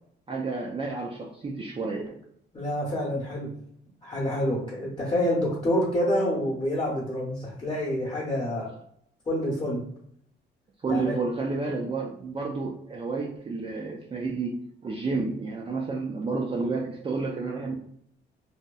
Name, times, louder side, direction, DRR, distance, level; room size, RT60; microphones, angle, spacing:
voice 1, 0.3-2.2 10.8-14.6 14.8-17.7, right 3 dB, 25° right, -2 dB, 0.4 m, -30 dB
voice 2, 2.5-3.5 4.0-8.7 9.3-9.9 10.9-11.2, equal, 25° left, -5 dB, 0.9 m, -27 dB
2.8 x 2.1 x 2.3 m, 0.69 s
cardioid pair, 90°, 20 cm